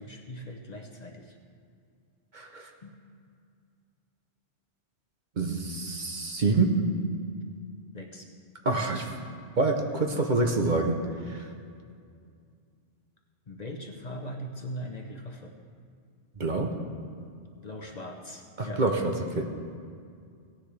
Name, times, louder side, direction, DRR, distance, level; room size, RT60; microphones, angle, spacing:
voice 1, 0.0-1.3 2.8-2.9 7.9-8.3 13.5-15.5 17.6-18.8, equal, 40° left, 2 dB, 0.8 m, -40 dB
voice 2, 2.3-2.7 5.4-6.8 8.6-9.1 9.6-11.0 11.3-11.5 16.4-16.8 18.6-19.4, right 3 dB, 45° right, 3 dB, 0.9 m, -26 dB
17.0 x 10.0 x 3.3 m, 2.3 s
omnidirectional pair, 1.2 m